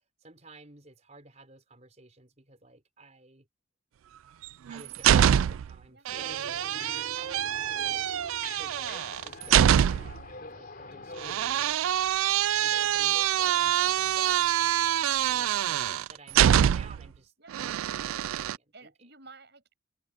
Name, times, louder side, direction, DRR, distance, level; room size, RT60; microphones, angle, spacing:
voice 1, 0.0-3.4 4.2-4.4 4.7-8.0 8.4-12.0 12.6-14.7 15.3-19.1, right 3 dB, 35° right, 4.9 m, -53 dB
sound 1, 4.4-5.7 6.1-10.2 11.2-17.1 17.5-18.6, right 10 dB, 80° right, 0.3 m, -25 dB
sound 2, 6.1-11.8, left 3 dB, 45° left, 4.1 m, -45 dB
voice 2, 12.7-13.0 17.4-17.5 18.7-19.8, right 3 dB, 55° right, 8.0 m, -53 dB
open air
head